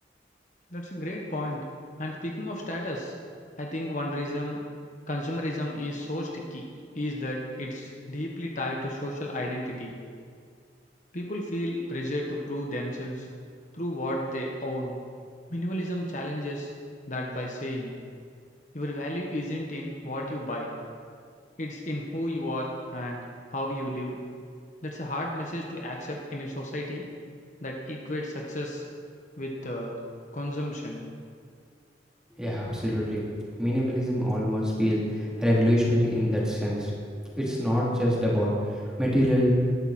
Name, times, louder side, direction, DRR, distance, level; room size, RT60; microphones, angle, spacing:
voice 1, 0.7-1.6 2.0-3.1 3.6-4.6 5.1-6.7 6.9-9.9 11.1-13.3 13.7-15.0 15.5-16.7 17.1-17.9 18.7-20.7 21.6-23.2 23.5-24.2 24.8-27.1 27.6-28.8 29.4-30.0 30.3-31.0, left 1 dB, 45° left, -1 dB, 1.6 m, -33 dB
voice 2, 32.4-33.2 33.6-36.9 37.3-39.6, equal, 5° right, -6 dB, 3.7 m, -25 dB
19.5 x 13.0 x 4.5 m, 2.2 s
head